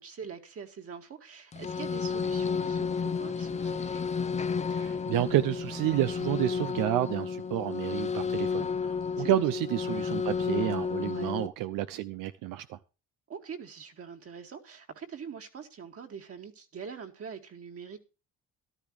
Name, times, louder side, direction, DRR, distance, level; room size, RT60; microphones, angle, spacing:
voice 1, 0.0-4.0 9.2-9.4 11.1-11.3 13.3-18.0, right 6 dB, 45° right, 2.1 m, -44 dB
sound 1, 1.5-11.5, left 5 dB, 20° left, 0.6 m, -32 dB
voice 2, 4.7-12.8, right 13 dB, 80° right, 0.7 m, -30 dB
14.0 x 12.0 x 3.2 m
cardioid pair, 115°, 32 cm